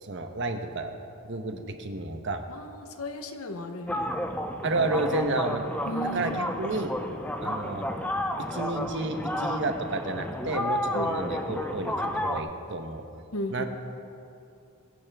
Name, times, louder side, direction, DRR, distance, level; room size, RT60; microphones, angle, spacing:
voice 1, 0.0-0.9 1.2-2.4 4.6-5.7 6.1-6.9 7.4-7.9 8.5-13.0 13.5-13.7, right 2 dB, 55° right, 6 dB, 1.0 m, -31 dB
voice 2, 2.5-4.2 5.8-6.4 10.9-11.1 13.3-13.7, left 1 dB, 70° left, 7 dB, 1.0 m, -35 dB
sound 1, 3.9-12.4, left 1 dB, 5° left, 0.5 m, -31 dB
22.0 x 9.4 x 3.5 m, 2.7 s
head